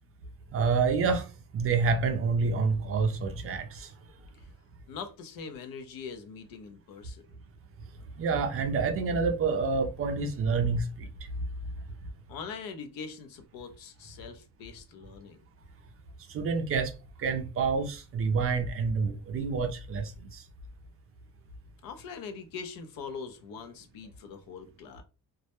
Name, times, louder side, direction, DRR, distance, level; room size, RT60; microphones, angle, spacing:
voice 1, 0.5-1.2 1.5-3.6 8.2-10.8 16.3-16.9 17.2-20.1, right 4 dB, 40° right, 0.4 m, -27 dB
voice 2, 4.9-7.3 12.3-15.4 21.8-25.0, left 5 dB, 75° left, 0.6 m, -42 dB
2.2 x 2.0 x 2.8 m
cardioid pair, 150°, 35 cm